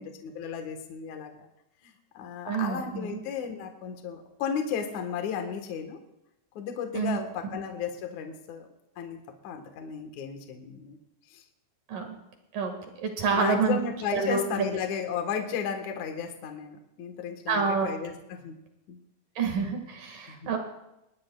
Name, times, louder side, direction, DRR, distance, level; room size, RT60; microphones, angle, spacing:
voice 1, 0.0-1.5 1.8-6.0 6.6-8.7 9.0-9.2 9.4-11.0 11.3-11.4 13.3-18.6 18.9-19.0 20.2-20.5, left 7 dB, 60° left, 4 dB, 2.5 m, -34 dB
voice 2, 2.5-3.1 6.9-7.2 11.9-12.2 12.5-12.7 13.0-13.8 14.1-14.4 17.5-17.9 19.4-20.6, right 5 dB, 65° right, 3 dB, 3.4 m, -27 dB
22.0 x 20.0 x 2.3 m, 0.89 s
omnidirectional pair, 4.2 m